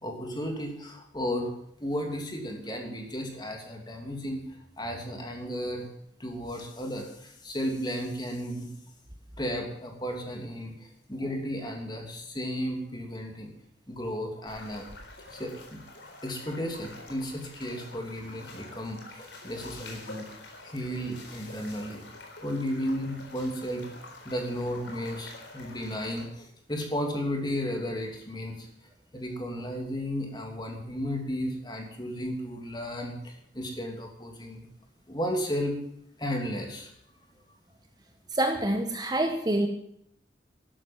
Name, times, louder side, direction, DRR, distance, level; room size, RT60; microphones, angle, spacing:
voice 1, 0.0-1.5 1.8-4.4 4.8-5.9 6.2-8.7 9.4-13.5 13.9-14.9 15.3-15.8 16.2-20.3 20.6-22.0 22.4-23.9 24.2-28.7 29.1-34.7 35.1-35.7 36.2-36.9, equal, 25° left, 2 dB, 2.9 m, -34 dB
sound 1, 14.4-26.3, left 2 dB, 75° left, 4.2 m, -47 dB
voice 2, 38.3-39.7, right 1 dB, 20° right, 5 dB, 1.2 m, -26 dB
12.5 x 12.0 x 7.4 m, 0.73 s
head